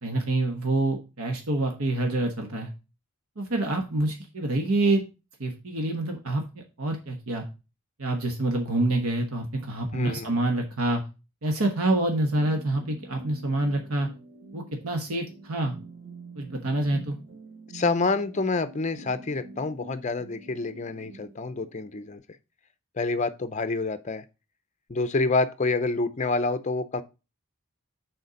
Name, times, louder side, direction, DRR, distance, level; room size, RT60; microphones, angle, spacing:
voice 1, 0.0-2.7 3.4-5.0 5.4-7.4 8.0-11.0 11.4-14.1 14.5-15.7 16.4-17.2, right 2 dB, 75° right, 1.2 m, -27 dB
voice 2, 9.9-10.3 17.7-22.2 23.0-24.2 24.9-27.0, left 3 dB, 35° left, 0.5 m, -27 dB
sound 1, 12.1-22.2, right 2 dB, 40° right, 3.3 m, -46 dB
6.7 x 4.3 x 5.1 m
head